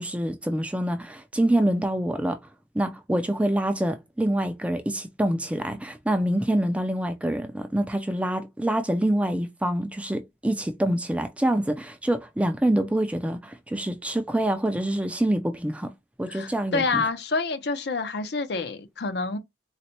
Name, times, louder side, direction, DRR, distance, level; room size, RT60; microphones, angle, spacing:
voice 1, 0.0-2.4 2.7-15.9 16.2-17.0, right 1 dB, 5° right, 0.3 m, -26 dB
voice 2, 16.3-19.4, left 4 dB, 60° left, 0.6 m, -28 dB
4.0 x 2.1 x 2.8 m
head